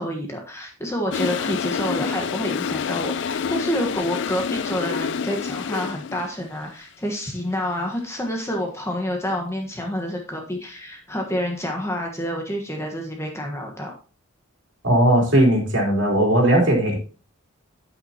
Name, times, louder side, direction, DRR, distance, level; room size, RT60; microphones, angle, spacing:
voice 1, 0.0-14.0, equal, 15° left, 1.3 m, -28 dB
Toilet flush, 1.1-6.3, left 6 dB, 55° left, 0.3 m, -27 dB
voice 2, 14.8-17.0, right 1 dB, 55° right, 3.6 m, -18 dB
9.3 x 8.7 x 2.9 m
head